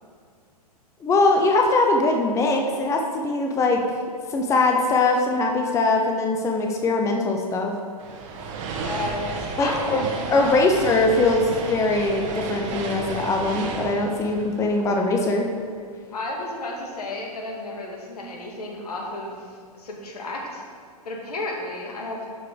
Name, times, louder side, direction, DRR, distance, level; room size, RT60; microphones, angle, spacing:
voice 1, 1.0-4.0 4.3-7.7 9.6-15.5, left 2 dB, 15° left, 2 dB, 0.7 m, -21 dB
sound 1, 8.0-15.4, right 4 dB, 50° right, 1.5 m, -33 dB
voice 2, 8.8-10.7 16.1-19.5 19.8-20.6 21.0-22.2, left 2 dB, 75° left, -1 dB, 2.1 m, -32 dB
11.5 x 4.8 x 5.1 m, 2.1 s
hypercardioid pair, 115°, 20 cm